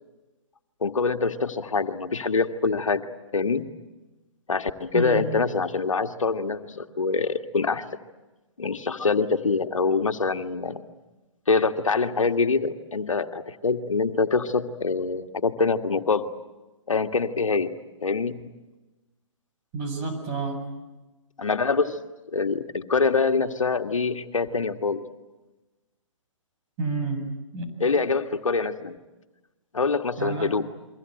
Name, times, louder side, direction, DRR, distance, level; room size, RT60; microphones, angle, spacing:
voice 1, 0.8-3.0 3.3-3.7 4.5-7.8 8.6-10.8 11.5-16.3 16.9-17.7 18.0-18.4 21.4-22.0 22.3-25.0 27.8-29.0 29.7-30.7, left 4 dB, 85° left, 7 dB, 1.8 m, -25 dB
voice 2, 4.9-5.3 19.7-20.6 26.8-27.2 27.5-27.7 30.2-30.5, right 3 dB, 35° right, 5 dB, 7.6 m, -29 dB
29.0 x 24.0 x 7.9 m, 1.1 s
hypercardioid pair, 140°, 16 cm